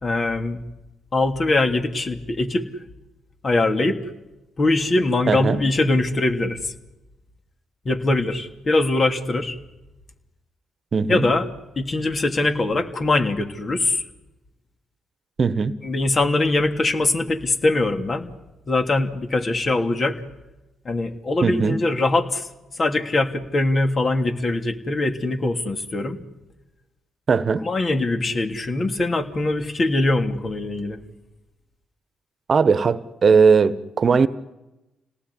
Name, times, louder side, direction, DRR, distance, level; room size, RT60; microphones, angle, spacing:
voice 1, 0.0-0.6 1.1-2.7 3.4-4.0 4.6-6.7 7.8-9.6 11.1-11.5 11.8-14.0 15.8-18.3 18.7-20.2 20.8-22.5 22.8-26.2 27.6-31.0, left 2 dB, 45° left, 5 dB, 3.0 m, -22 dB
voice 2, 5.3-5.6 10.9-11.2 15.4-15.7 21.4-21.8 27.3-27.6 32.5-34.3, right 5 dB, 50° right, 14 dB, 1.2 m, -18 dB
29.0 x 18.5 x 9.9 m, 1.0 s
hypercardioid pair, 50°, 0 cm